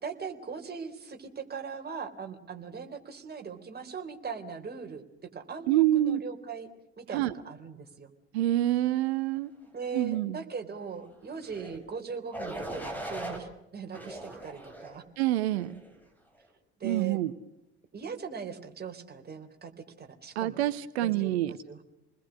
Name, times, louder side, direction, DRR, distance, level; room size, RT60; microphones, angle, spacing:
voice 1, 0.0-5.0 5.3-6.7 7.0-8.1 9.7-15.0 16.8-17.2 17.9-19.7 20.0-20.7 21.0-21.8, right 6 dB, 30° right, 4 dB, 3.8 m, -40 dB
voice 2, 5.7-6.2 7.1-7.3 8.3-9.5 9.9-10.4 15.2-15.7 16.8-17.3 20.4-21.5, right 14 dB, 70° right, 15 dB, 0.9 m, -26 dB
sound 1, 11.4-11.8 12.3-13.4 13.9-15.0 15.6-15.9, right 1 dB, 5° left, 7.6 m, -39 dB
29.0 x 20.5 x 6.4 m, 0.88 s
figure-of-eight pair, 60°, 33 cm